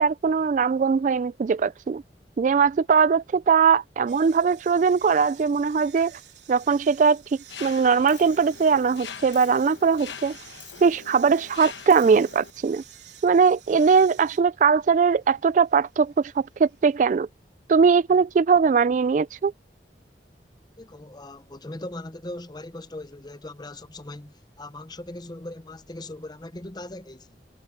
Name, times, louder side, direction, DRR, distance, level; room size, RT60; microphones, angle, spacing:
voice 1, 0.0-2.0 2.4-6.1 6.5-7.2 7.6-10.3 10.8-12.8 13.2-17.3 17.7-19.5, right 5 dB, 45° right, 0.3 m, -20 dB
sound 1, 4.1-17.0, right 12 dB, 70° right, 3.8 m, -51 dB
Mechanisms, 7.5-12.5, left 7 dB, 80° left, 1.1 m, -42 dB
voice 2, 20.8-27.4, left 1 dB, 25° left, 0.8 m, -39 dB
head